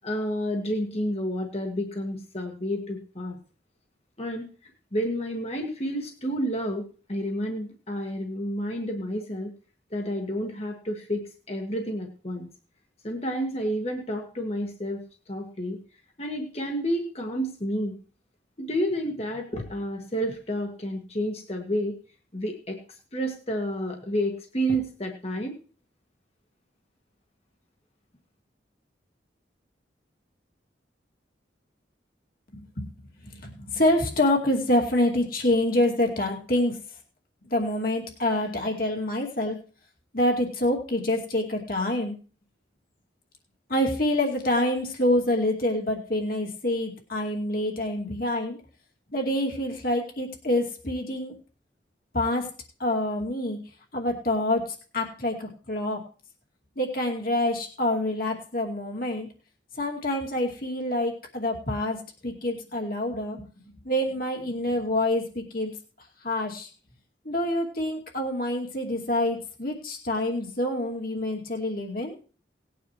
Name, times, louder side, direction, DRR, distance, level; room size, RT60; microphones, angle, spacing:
voice 1, 0.0-3.4 4.2-6.8 7.1-9.5 9.9-12.5 13.0-15.8 16.2-18.0 18.6-21.9 22.3-22.8 23.1-25.5, equal, 35° left, 2 dB, 1.5 m, -30 dB
voice 2, 32.5-32.9 33.2-36.8 37.5-39.6 40.1-42.1 43.7-48.6 49.1-51.4 52.1-52.5 52.8-53.6 53.9-56.0 56.8-59.3 59.8-65.7 66.2-66.7 67.2-72.1, left 1 dB, 50° left, 0 dB, 2.5 m, -26 dB
19.0 x 9.3 x 3.1 m, 0.38 s
head